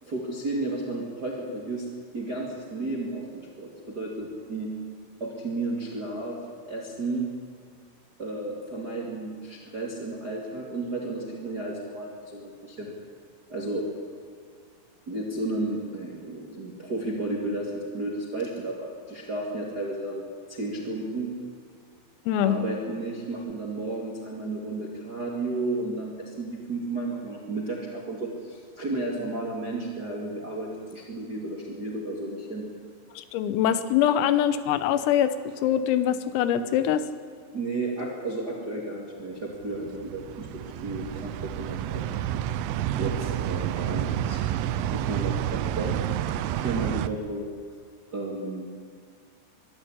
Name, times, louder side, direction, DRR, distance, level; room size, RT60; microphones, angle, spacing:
voice 1, 0.0-1.8 2.1-4.7 5.2-6.4 6.6-7.3 8.2-12.9 13.5-13.8 15.1-21.3 22.4-32.7 37.5-42.1 42.9-44.4 44.9-45.9 46.5-47.5 48.1-48.7, right 2 dB, 35° right, 0 dB, 1.6 m, -33 dB
voice 2, 22.3-22.6 33.2-35.4 35.6-37.1, left 10 dB, 85° left, 13 dB, 3.8 m, -23 dB
sound 1, 39.5-47.1, right 11 dB, 80° right, 3.1 m, -29 dB
24.0 x 13.0 x 9.9 m, 2.1 s
omnidirectional pair, 5.9 m